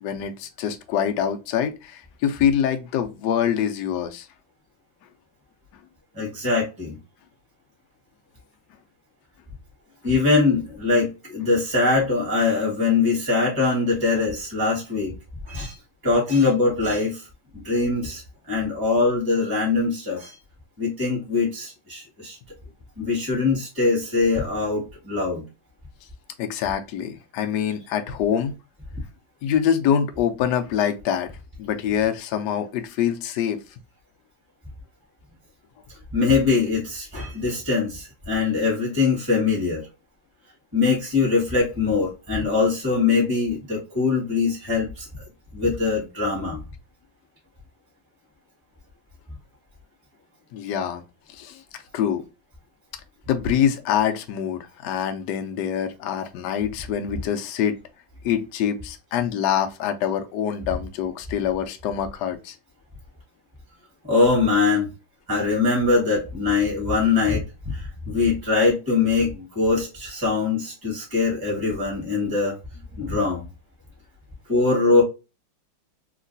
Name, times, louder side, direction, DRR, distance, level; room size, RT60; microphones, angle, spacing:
voice 1, 0.0-4.3 26.4-28.5 29.4-31.3 31.6-33.6 50.5-51.0 51.3-51.6 51.9-52.2 53.3-57.8 58.2-62.5 73.0-73.1, left 9 dB, 75° left, 0.9 m, -25 dB
voice 2, 6.1-7.0 10.0-15.1 15.5-15.7 16.0-17.2 17.5-18.2 18.5-20.4 20.8-22.4 23.0-25.4 36.1-39.8 40.7-45.1 45.5-46.6 64.0-64.9 65.3-72.5 72.9-73.4 74.5-75.0, left 4 dB, 10° right, 1.3 m, -22 dB
3.1 x 2.9 x 2.5 m
omnidirectional pair, 2.3 m